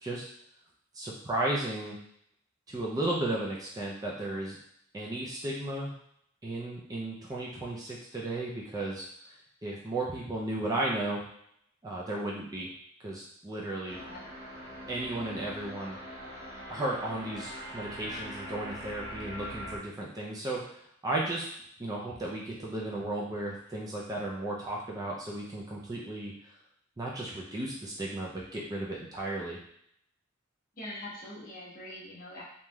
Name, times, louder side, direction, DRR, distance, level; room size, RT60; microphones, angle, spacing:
voice 1, 0.9-2.0 2.7-4.6 4.9-5.9 6.4-9.0 9.6-11.2 11.8-12.7 13.0-14.0 14.9-16.0 16.7-20.6 21.0-21.5 21.8-26.3 27.0-29.6, right 2 dB, 20° right, -3 dB, 0.4 m, -34 dB
sound 1, 13.9-19.8, equal, 80° right, 0.9 m, -42 dB
voice 2, 30.7-32.4, left 1 dB, 45° left, -6 dB, 1.0 m, -43 dB
3.2 x 2.6 x 2.2 m, 0.70 s
head